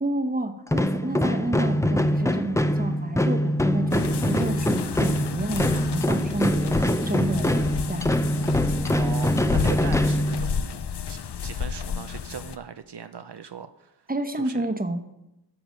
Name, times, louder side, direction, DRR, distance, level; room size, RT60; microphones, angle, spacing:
voice 1, 0.0-8.2 14.1-15.0, right 1 dB, 20° right, 8 dB, 1.0 m, -30 dB
sound 1, 0.7-10.8, left 1 dB, 5° left, 0.5 m, -24 dB
sound 2, 3.9-12.6, left 7 dB, 75° left, 0.6 m, -31 dB
voice 2, 9.0-10.6 11.1-13.9 14.4-14.7, right 7 dB, 75° right, 10 dB, 0.5 m, -39 dB
13.5 x 6.1 x 5.1 m, 0.91 s
wide cardioid pair, 40°, 41 cm